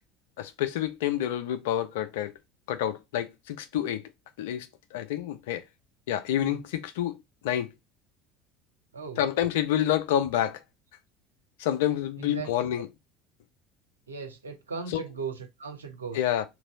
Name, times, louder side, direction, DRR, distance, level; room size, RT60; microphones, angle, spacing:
voice 1, 0.4-2.3 2.7-4.0 4.4-5.6 6.1-7.2 7.4-7.7 9.2-10.6 11.6-12.9 14.9-15.0 16.1-16.4, left 11 dB, 70° left, 0.4 m, -28 dB
voice 2, 12.2-12.5 14.1-16.2, right 5 dB, 85° right, 0.6 m, -37 dB
3.0 x 2.6 x 3.7 m
figure-of-eight pair, 65°, 0 cm